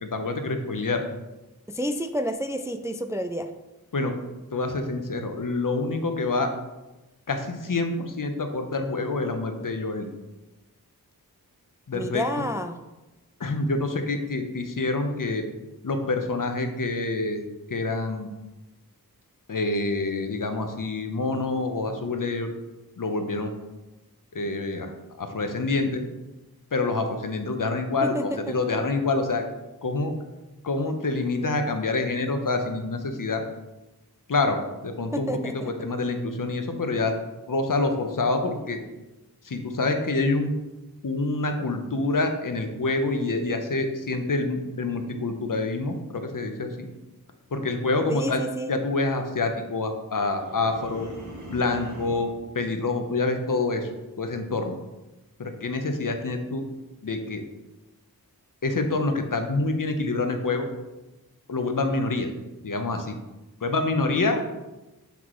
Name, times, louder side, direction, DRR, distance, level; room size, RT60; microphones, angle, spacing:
voice 1, 0.0-1.0 3.9-4.1 4.5-6.5 7.3-10.1 11.9-12.4 13.4-15.5 15.8-17.4 17.7-18.3 19.5-22.5 23.0-23.5 24.3-24.9 25.2-26.0 26.7-29.4 29.8-30.1 30.6-33.4 34.3-37.1 37.5-38.8 39.4-40.5 41.0-46.9 47.5-48.4 48.7-51.1 51.5-53.9 54.2-54.7 55.4-56.6 57.0-57.4 58.6-60.7 61.5-62.3 62.6-63.1 63.6-64.4, left 3 dB, 60° left, 6 dB, 0.9 m, -27 dB
voice 2, 1.7-3.5 11.9-12.8 28.0-28.6 35.1-35.7 48.1-48.7, equal, 10° right, 7 dB, 0.3 m, -30 dB
sound 1, 50.3-52.4, equal, 50° right, 1.3 m, -41 dB
7.0 x 6.1 x 3.1 m, 1.1 s
wide cardioid pair, 65°, 37 cm